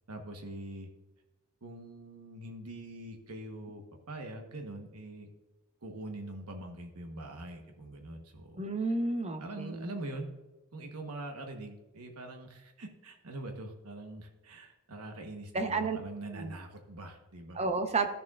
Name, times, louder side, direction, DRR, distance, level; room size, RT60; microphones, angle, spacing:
voice 1, 0.1-0.9 1.6-5.3 5.8-8.6 9.4-10.3 10.7-17.6, right 1 dB, 90° right, 3 dB, 1.2 m, -43 dB
voice 2, 8.6-9.9 15.5-16.0 16.3-16.5 17.5-18.1, right 3 dB, 30° right, 7 dB, 0.8 m, -31 dB
13.5 x 6.9 x 2.4 m, 1.0 s
head